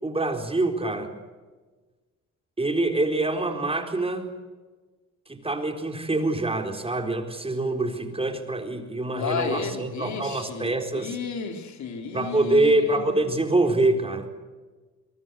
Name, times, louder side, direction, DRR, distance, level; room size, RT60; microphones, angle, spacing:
voice 1, 0.0-1.1 2.6-4.3 5.3-11.2 12.1-14.3, right 2 dB, 20° right, 5 dB, 4.3 m, -25 dB
voice 2, 9.1-13.2, left 5 dB, 70° left, 6 dB, 3.6 m, -33 dB
24.0 x 23.5 x 8.1 m, 1.3 s
cardioid pair, 90°, 30 cm